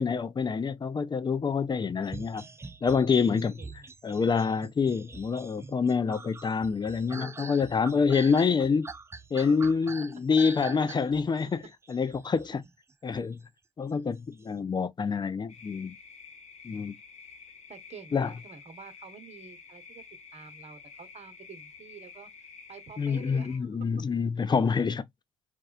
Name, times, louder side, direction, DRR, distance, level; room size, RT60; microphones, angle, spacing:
voice 1, 0.0-2.4 2.8-3.6 4.0-8.9 9.3-11.6 11.9-12.6 13.0-13.4 13.8-15.9 16.6-17.0 18.1-18.3 23.0-25.0, left 5 dB, 30° left, 0.6 m, -26 dB
sound 1, 2.0-13.3 14.1-14.5, right 3 dB, 15° right, 0.4 m, -45 dB
voice 2, 3.2-3.9 9.6-9.9 10.7-11.4 12.0-12.1 17.7-20.0 20.3-22.3 22.7-23.8 24.7-24.8, right 6 dB, 45° right, 1.1 m, -49 dB
sound 2, 15.5-23.6, left 5 dB, 45° left, 1.2 m, -50 dB
4.2 x 2.3 x 2.4 m
hypercardioid pair, 60°, 16 cm